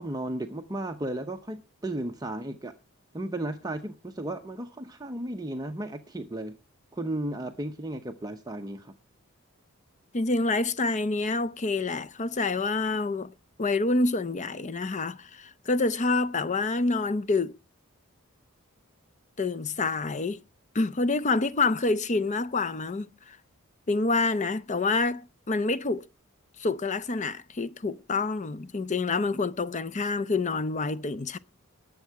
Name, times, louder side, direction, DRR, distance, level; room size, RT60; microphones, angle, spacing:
voice 1, 0.0-2.7 3.1-6.6 6.9-8.9, right 1 dB, 20° right, 0.8 m, -34 dB
voice 2, 10.1-13.3 13.6-17.6 19.4-20.4 20.7-23.4 23.9-26.1 26.6-31.4, left 3 dB, 35° left, 0.6 m, -27 dB
20.0 x 7.5 x 4.7 m
head